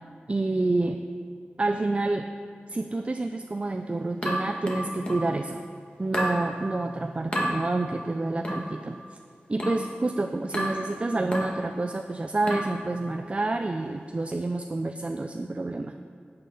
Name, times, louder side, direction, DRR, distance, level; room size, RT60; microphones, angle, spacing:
voice 1, 0.3-1.0 1.6-2.3 2.7-5.6 6.0-9.0 9.5-16.0, right 2 dB, 35° right, 6 dB, 0.4 m, -28 dB
sound 1, 4.2-5.3 6.1-6.4 7.3-7.5 8.4-8.7 9.6-9.9 10.5-10.8 11.3-11.6 12.5-12.8, equal, 30° left, 1.7 m, -29 dB
10.5 x 8.7 x 4.0 m, 2.3 s
wide cardioid pair, 80°, 4 cm